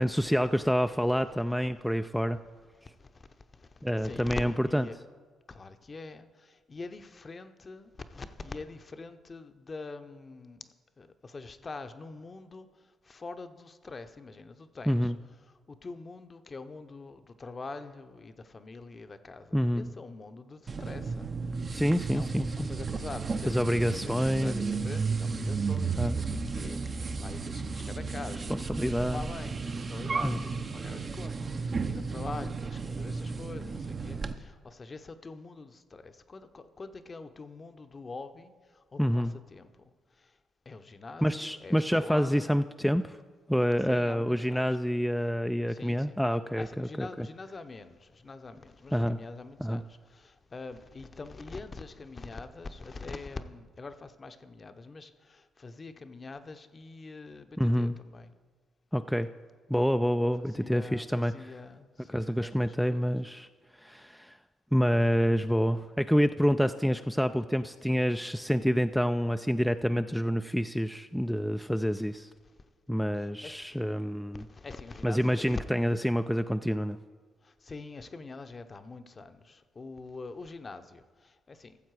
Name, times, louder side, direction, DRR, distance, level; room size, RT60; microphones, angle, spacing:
voice 1, 0.0-2.4 3.8-4.8 14.9-15.2 19.5-19.9 21.7-22.7 23.5-24.9 26.0-26.2 28.7-29.3 30.2-30.4 39.0-39.3 41.2-43.2 43.5-47.3 48.9-49.2 49.6-49.8 57.6-58.0 58.9-59.3 59.7-61.3 62.1-63.5 63.8-64.4 64.7-72.3 72.9-74.4 75.0-77.0, equal, ahead, 8 dB, 0.3 m, -27 dB
voice 2, 2.8-5.0 5.5-10.7 11.0-15.1 15.4-21.3 22.1-40.4 40.7-42.6 43.9-44.8 45.7-46.1 46.6-58.3 60.4-63.2 72.4-72.5 73.1-73.5 74.3-75.6 77.4-81.8, left 3 dB, 35° left, 10 dB, 0.7 m, -44 dB
sound 1, 20.7-34.3, right 4 dB, 45° right, 0.7 m, -33 dB
13.5 x 7.2 x 4.8 m, 1.5 s
supercardioid pair, 60°, 0 cm